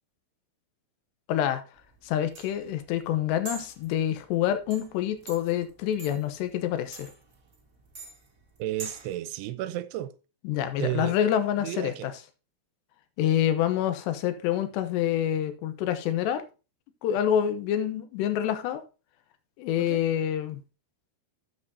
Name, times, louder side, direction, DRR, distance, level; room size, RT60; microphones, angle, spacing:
voice 1, 1.3-1.6 2.0-7.1 10.4-12.1 13.2-16.4 17.0-18.8 19.6-20.6, left 10 dB, 80° left, 3.1 m, -27 dB
sound 1, 1.8-9.2, right 4 dB, 50° right, 0.9 m, -45 dB
voice 2, 8.6-10.1 10.8-11.2 11.6-12.1 19.8-20.0, right 14 dB, 85° right, 2.6 m, -32 dB
12.5 x 7.7 x 2.7 m
omnidirectional pair, 4.9 m